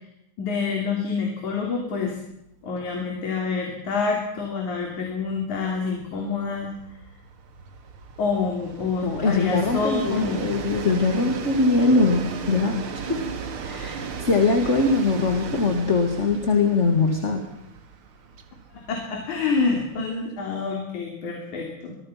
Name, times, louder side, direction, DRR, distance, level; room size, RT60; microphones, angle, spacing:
voice 1, 0.4-2.2 2.6-6.7 8.2-10.4 13.1-13.2 13.8-13.9 18.7-22.0, left 4 dB, 75° left, 1 dB, 4.6 m, -27 dB
Train, 2.0-2.1 2.5-2.6 2.9-20.3, right 5 dB, 50° right, 2.4 m, -36 dB
voice 2, 9.0-12.8 13.1-13.2 13.6-17.4, left 3 dB, 25° left, 4 dB, 2.1 m, -22 dB
25.5 x 22.0 x 5.9 m, 0.78 s
omnidirectional pair, 3.4 m